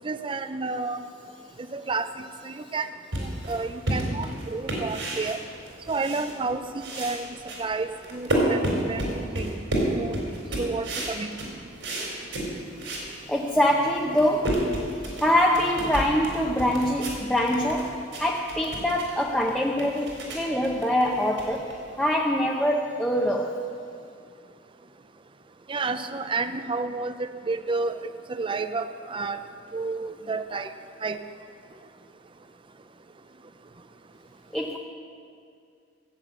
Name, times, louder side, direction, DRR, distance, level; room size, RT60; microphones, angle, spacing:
voice 1, 0.0-1.0 1.7-2.1 2.4-2.9 3.1-5.4 5.9-6.6 7.0-7.3 7.6-9.5 9.8-10.2 10.6-11.3 25.7-28.0 28.3-29.4 29.7-30.7 31.0-31.2, right 3 dB, 25° right, 10 dB, 0.5 m, -30 dB
sound 1, 3.1-6.5 6.8-13.1 13.5-13.6 14.0-22.1, right 1 dB, 80° right, 4.0 m, -31 dB
voice 2, 12.8-14.8 15.2-23.6 34.5-34.8, left 1 dB, 5° left, -2 dB, 0.8 m, -24 dB
15.0 x 8.3 x 8.2 m, 2.4 s
head